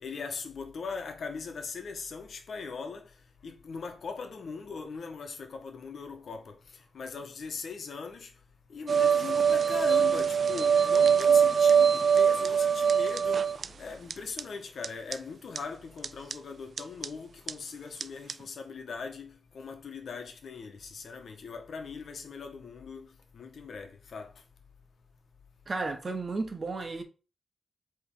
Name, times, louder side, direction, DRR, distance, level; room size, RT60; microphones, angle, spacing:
voice 1, 0.0-3.0 3.4-6.5 6.9-8.3 8.7-13.4 13.8-23.1 23.3-24.3, left 5 dB, 65° left, 1.3 m, -40 dB
sound 1, 8.9-13.7 14.1-14.2 14.4-14.5 14.8-14.9 15.1-15.2 15.6-15.7 16.0-16.3 16.8-17.1 17.5-17.6 18.0-18.1 18.3-18.4, right 7 dB, 55° right, 0.3 m, -23 dB
voice 2, 25.7-27.0, right 3 dB, 35° right, 1.2 m, -33 dB
7.9 x 3.4 x 3.9 m
cardioid pair, 95°, 0 cm